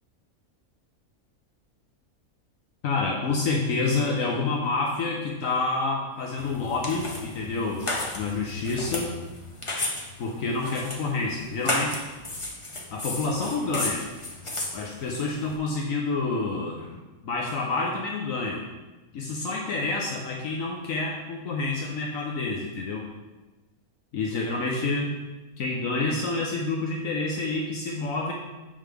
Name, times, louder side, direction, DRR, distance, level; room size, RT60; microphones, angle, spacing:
voice 1, 2.8-7.9 8.1-9.2 10.2-12.0 12.9-14.0 14.7-18.6 19.1-23.1 24.1-25.1 25.6-28.3, left 3 dB, 75° left, -1 dB, 1.1 m, -28 dB
sound 1, 6.4-15.6, left 2 dB, 30° left, 0.7 m, -34 dB
7.5 x 5.5 x 3.4 m, 1.1 s
omnidirectional pair, 1.5 m